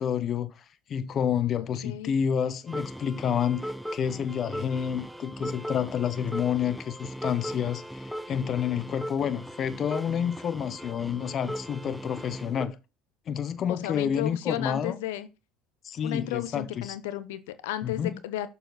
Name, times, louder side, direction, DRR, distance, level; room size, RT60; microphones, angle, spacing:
voice 1, 0.0-12.8 13.3-15.0 15.8-17.0 17.8-18.1, left 8 dB, 45° left, 0.7 m, -29 dB
sound 1, 2.7-12.6, equal, ahead, 0.8 m, -38 dB
voice 2, 13.7-15.3 16.0-18.5, left 13 dB, 85° left, 0.9 m, -33 dB
6.9 x 6.7 x 4.0 m
supercardioid pair, 85°, 0 cm